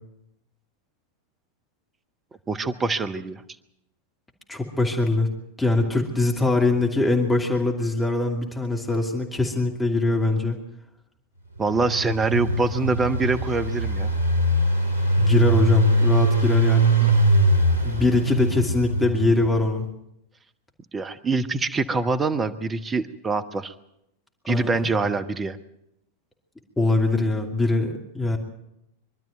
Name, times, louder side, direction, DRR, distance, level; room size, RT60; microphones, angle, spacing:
voice 1, 2.5-3.4 11.6-14.1 17.0-17.1 20.9-23.7 24.5-25.6, right 3 dB, 20° right, 9 dB, 1.1 m, -25 dB
voice 2, 4.5-5.3 5.6-10.6 15.1-17.0 17.8-19.9 24.5-24.8 26.8-28.4, left 2 dB, 10° left, 1 dB, 2.7 m, -22 dB
Engine, 11.6-19.6, right 1 dB, 80° left, 2.8 m, -22 dB
24.0 x 12.5 x 9.2 m, 0.81 s
figure-of-eight pair, 90°, 0 cm